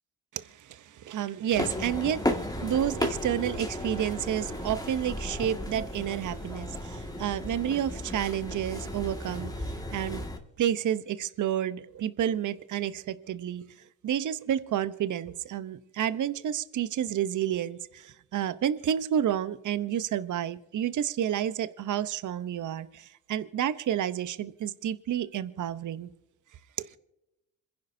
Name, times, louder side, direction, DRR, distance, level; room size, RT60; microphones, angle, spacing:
voice 1, 0.3-10.2 10.6-13.6 14.0-26.1 26.8-26.9, right 10 dB, 50° right, 0.9 m, -30 dB
sound 1, 1.6-10.4, left 1 dB, 10° left, 1.9 m, -34 dB
26.5 x 10.5 x 2.7 m
supercardioid pair, 60°, 38 cm